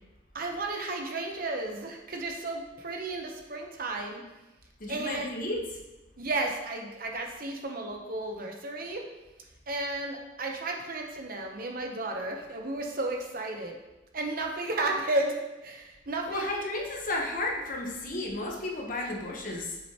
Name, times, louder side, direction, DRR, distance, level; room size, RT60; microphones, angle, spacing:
voice 1, 0.3-4.2 4.9-5.3 6.2-9.0 9.7-13.8 14.1-16.5, right 2 dB, 50° right, 2 dB, 0.8 m, -33 dB
voice 2, 4.8-5.6 16.3-19.8, left 2 dB, 45° left, 0 dB, 1.1 m, -33 dB
7.6 x 6.3 x 3.0 m, 1.0 s
head